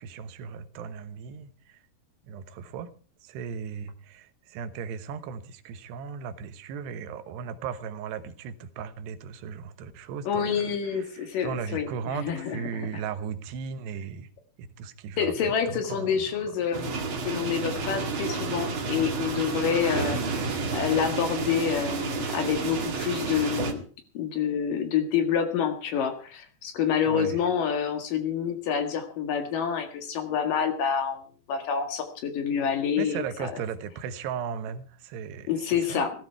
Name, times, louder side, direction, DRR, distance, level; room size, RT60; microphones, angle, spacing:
voice 1, 0.0-1.8 2.2-2.9 3.2-14.3 14.6-16.5 27.0-27.4 33.0-36.1, right 7 dB, 80° right, 3.2 m, -37 dB
voice 2, 10.3-12.9 15.2-17.0 17.2-20.2 20.7-23.8 24.1-31.2 31.5-33.2 35.5-36.1, left 7 dB, 60° left, 3.2 m, -27 dB
sound 1, 16.7-23.7, right 4 dB, 40° right, 1.9 m, -30 dB
16.0 x 14.5 x 4.7 m
omnidirectional pair, 4.8 m